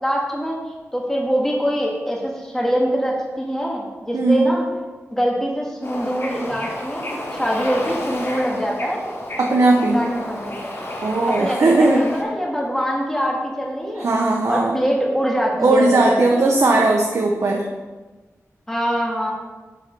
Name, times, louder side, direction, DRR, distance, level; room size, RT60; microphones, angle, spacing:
voice 1, 0.0-4.7 5.1-9.0 9.9-10.7 11.3-16.5 18.7-19.3, equal, 10° left, -2 dB, 1.8 m, -24 dB
voice 2, 4.1-4.5 9.4-10.0 11.0-12.0 14.0-14.7 15.6-17.7, right 2 dB, 70° right, 0 dB, 0.8 m, -17 dB
Bird / Ocean, 5.8-12.2, left 1 dB, 45° left, 1.8 m, -31 dB
7.2 x 6.5 x 4.6 m, 1.3 s
wide cardioid pair, 110°, 5 cm